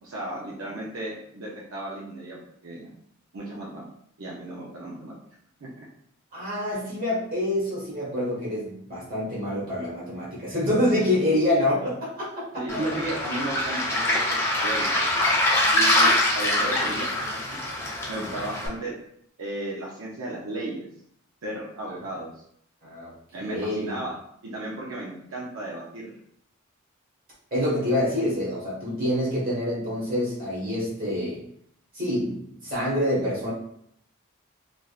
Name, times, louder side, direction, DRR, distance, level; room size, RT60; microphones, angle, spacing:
voice 1, 0.0-2.9 3.3-3.9 4.2-5.1 5.6-5.9 10.9-11.0 12.5-15.1 15.7-17.6 18.1-18.9 19.4-20.9 21.4-22.3 23.3-24.1 24.5-26.1, right 1 dB, 75° right, -5 dB, 0.6 m, -34 dB
voice 2, 6.3-12.8 18.1-18.3 22.8-24.0 27.5-31.4 31.9-33.5, left 1 dB, 45° right, -8 dB, 1.3 m, -27 dB
Waves surf, 12.7-18.7, left 1 dB, 10° left, 0.6 m, -24 dB
3.4 x 2.5 x 2.3 m, 0.69 s
head